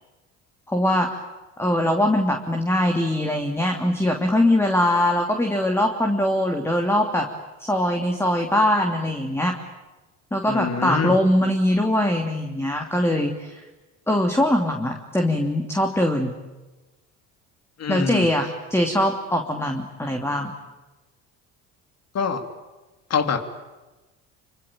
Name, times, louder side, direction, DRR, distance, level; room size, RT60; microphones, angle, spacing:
voice 1, 0.7-1.2 1.6-7.3 7.6-9.6 10.3-13.6 14.1-16.3 17.9-20.5 22.3-22.4, left 1 dB, 5° left, 3 dB, 3.0 m, -22 dB
voice 2, 10.4-11.1 17.8-18.3 22.1-22.4 23.1-23.4, left 6 dB, 45° left, 8 dB, 3.2 m, -24 dB
26.0 x 25.0 x 9.0 m, 1.2 s
hypercardioid pair, 70°, 35 cm